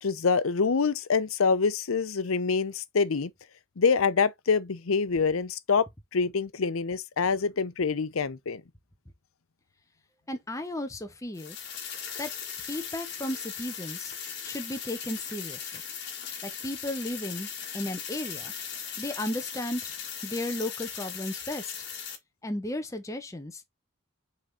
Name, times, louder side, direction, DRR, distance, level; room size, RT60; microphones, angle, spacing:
voice 1, 0.0-3.3 3.8-5.9 6.1-8.6, left 5 dB, 85° left, 0.7 m, -26 dB
voice 2, 10.3-11.6 12.2-12.3 12.7-14.1 14.4-15.8 16.4-17.5 17.7-18.5 19.0-19.9 20.2-21.7 22.4-23.6, left 1 dB, 15° left, 0.9 m, -34 dB
sound 1, 11.3-22.2, left 7 dB, 55° left, 1.9 m, -38 dB
6.4 x 3.7 x 4.1 m
head